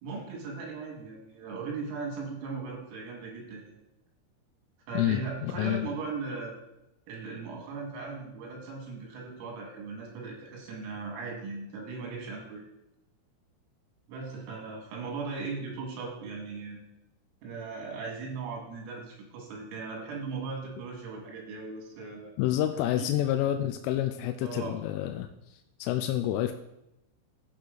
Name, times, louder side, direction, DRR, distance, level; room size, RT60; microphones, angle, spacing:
voice 1, 0.0-3.8 4.9-6.5 7.1-12.6 14.1-16.8 17.4-22.3 23.0-23.3 24.4-24.8, right 4 dB, 90° right, -1 dB, 4.7 m, -38 dB
voice 2, 4.9-5.9 22.4-26.5, left 12 dB, 85° left, 6 dB, 3.0 m, -29 dB
14.5 x 4.9 x 3.9 m, 0.88 s
omnidirectional pair, 5.8 m